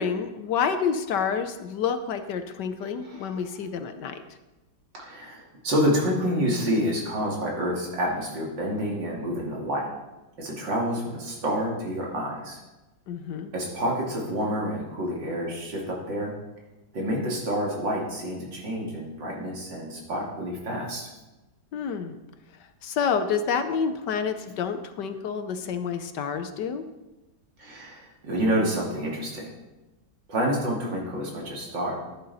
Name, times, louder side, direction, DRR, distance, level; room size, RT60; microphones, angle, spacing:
voice 1, 0.0-4.2 13.1-13.5 21.7-22.2 22.8-26.8, left 6 dB, 70° left, 9 dB, 1.3 m, -28 dB
voice 2, 4.9-9.9 10.4-12.6 13.5-16.3 16.9-21.1 27.6-29.5 30.3-31.9, equal, 70° right, -2 dB, 3.3 m, -28 dB
14.5 x 10.5 x 4.1 m, 1.1 s
omnidirectional pair, 2.1 m